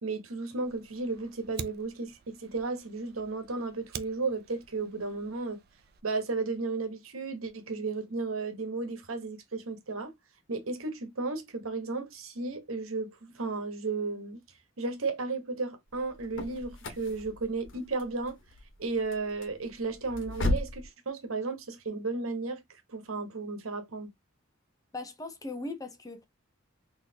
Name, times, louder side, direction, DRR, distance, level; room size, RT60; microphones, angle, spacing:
voice 1, 0.0-5.6 6.0-10.1 10.5-14.4 14.8-18.4 18.8-22.6 22.9-24.1, right 3 dB, 85° right, 1.1 m, -34 dB
Fire, 0.6-6.0, right 6 dB, 50° right, 0.5 m, -47 dB
sound 1, 15.9-20.9, left 1 dB, 65° left, 1.2 m, -35 dB
voice 2, 24.9-26.3, left 2 dB, 20° left, 0.7 m, -39 dB
4.1 x 2.9 x 2.7 m
head